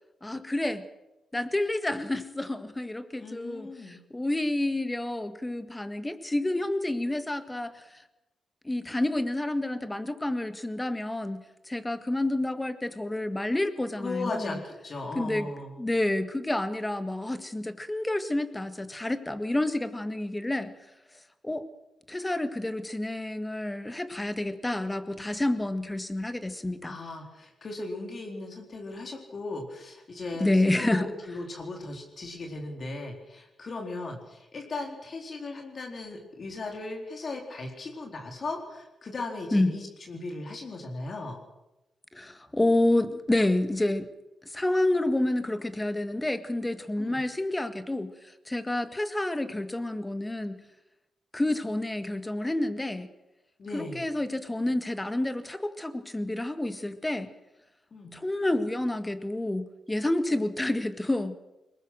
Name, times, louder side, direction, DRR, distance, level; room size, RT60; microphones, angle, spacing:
voice 1, 0.2-0.9 1.3-8.0 8.6-14.6 15.2-15.5 15.8-20.7 21.4-21.7 22.1-27.0 30.4-31.1 39.5-39.7 42.1-44.1 44.5-50.6 51.3-53.1 53.7-57.3 58.1-61.4, left 1 dB, 15° left, 10 dB, 1.8 m, -29 dB
voice 2, 3.2-4.0 14.0-15.7 26.8-41.4 47.0-47.2 53.6-54.0 57.9-58.1, left 2 dB, 50° left, 2 dB, 4.3 m, -37 dB
22.0 x 19.5 x 6.4 m, 0.95 s
cardioid pair, 70°, 0 cm